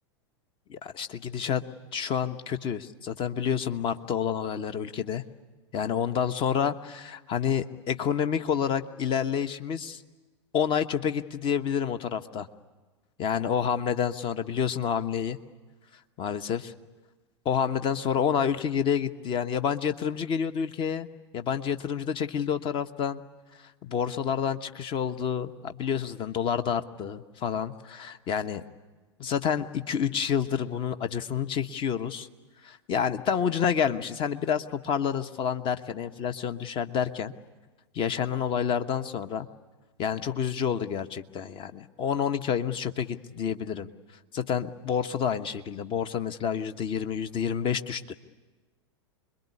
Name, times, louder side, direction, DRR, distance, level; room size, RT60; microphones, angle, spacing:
voice 1, 0.7-1.6 1.9-5.2 5.7-10.0 10.5-12.5 13.2-15.4 16.2-16.7 17.4-21.1 21.3-23.2 23.8-28.6 29.2-32.3 32.6-37.3 37.9-39.5 40.0-43.9 44.3-48.1, left 7 dB, 35° left, 10 dB, 1.3 m, -29 dB
26.0 x 22.5 x 9.8 m, 1.3 s
hypercardioid pair, 95°, 15 cm